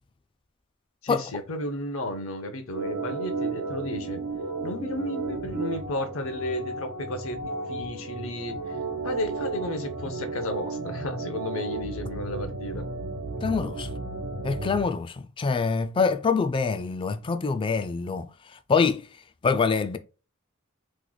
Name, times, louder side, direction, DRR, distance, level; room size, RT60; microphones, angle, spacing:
voice 1, 1.0-4.2 4.6-8.7 9.0-12.8, left 1 dB, 70° left, 0.7 m, -33 dB
Organ, 2.7-14.9, right 3 dB, 90° right, 1.0 m, -33 dB
voice 2, 13.4-13.9 14.4-18.3 18.7-19.0 19.4-20.0, left 5 dB, 25° left, 0.3 m, -25 dB
3.1 x 2.1 x 3.8 m
head